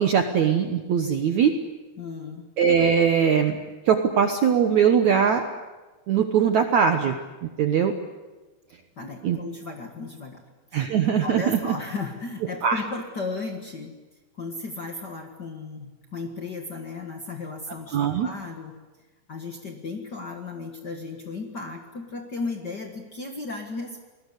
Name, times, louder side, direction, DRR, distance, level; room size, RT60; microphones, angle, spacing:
voice 1, 0.0-1.5 2.6-3.6 3.8-5.4 6.1-7.1 7.6-7.9 9.2-9.4 10.7-11.6 12.6-12.8 17.9-18.3, right 7 dB, 80° right, 6 dB, 1.6 m, -21 dB
voice 2, 2.0-2.5 9.0-10.4 10.7-10.8 11.2-13.9 14.3-18.7 19.3-24.0, left 3 dB, 75° left, 3 dB, 0.9 m, -35 dB
29.0 x 20.5 x 8.3 m, 1.2 s
omnidirectional pair, 5.1 m